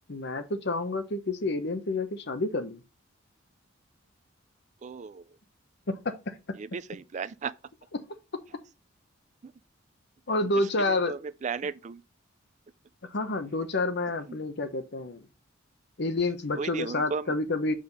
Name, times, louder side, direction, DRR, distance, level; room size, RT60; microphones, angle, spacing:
voice 1, 0.1-2.8 5.9-6.1 10.3-11.1 13.1-15.3 16.0-17.7, left 2 dB, 55° left, 0.9 m, -29 dB
voice 2, 4.8-5.2 6.6-7.5 9.4-9.5 10.9-12.0 14.3-14.4 16.6-17.3, right 5 dB, 35° right, 0.4 m, -35 dB
7.0 x 5.1 x 4.0 m
head